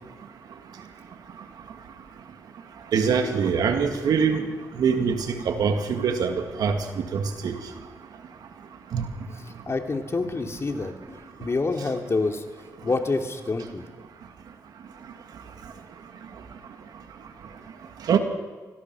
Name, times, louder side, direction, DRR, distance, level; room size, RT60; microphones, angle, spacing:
voice 1, 2.9-4.4 4.8-6.3 6.6-6.8 7.1-7.5 8.9-9.1 18.1-18.2, right 6 dB, 80° right, 5 dB, 2.2 m, -23 dB
voice 2, 9.7-12.4 12.8-13.8, left 3 dB, 45° left, 4 dB, 3.0 m, -27 dB
25.5 x 18.0 x 6.3 m, 1.3 s
supercardioid pair, 50°, 7 cm